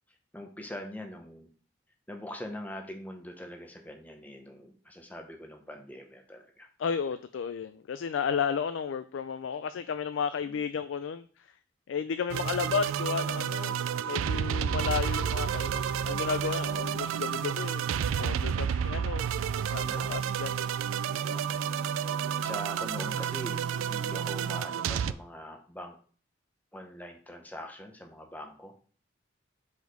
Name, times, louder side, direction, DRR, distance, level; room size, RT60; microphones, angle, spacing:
voice 1, 0.1-1.5 2.1-6.7 10.4-10.6 19.9-20.3 21.1-21.5 22.4-26.0 26.7-28.7, left 1 dB, 10° left, 3 dB, 0.7 m, -43 dB
voice 2, 6.8-11.5 11.9-17.8 18.2-19.2 19.7-20.8, left 6 dB, 70° left, 11 dB, 0.3 m, -33 dB
sound 1, 12.3-25.1, right 8 dB, 90° right, 0.3 m, -30 dB
4.7 x 4.2 x 5.2 m, 0.43 s
head